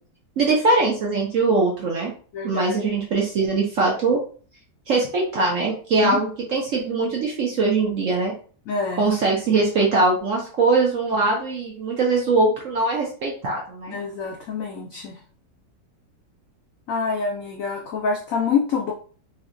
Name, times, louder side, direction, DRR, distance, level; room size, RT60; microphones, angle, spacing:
voice 1, 0.4-2.1 2.4-4.2 4.9-8.3 9.0-14.0, right 3 dB, 65° right, -2 dB, 0.8 m, -21 dB
voice 2, 2.3-2.8 8.7-9.0 13.9-15.2 16.9-18.9, left 5 dB, 80° left, 1 dB, 0.7 m, -26 dB
3.2 x 3.1 x 2.5 m, 0.42 s
omnidirectional pair, 2.0 m